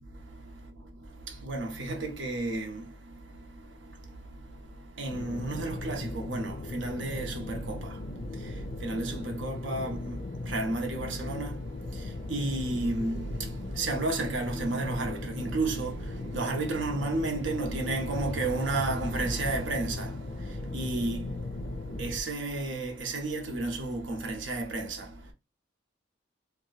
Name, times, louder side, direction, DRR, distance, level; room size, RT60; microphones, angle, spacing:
voice 1, 0.1-25.3, right 2 dB, 80° right, 0.9 m, -33 dB
sound 1, 5.1-22.2, left 2 dB, 40° left, 0.4 m, -38 dB
2.8 x 2.2 x 3.9 m
head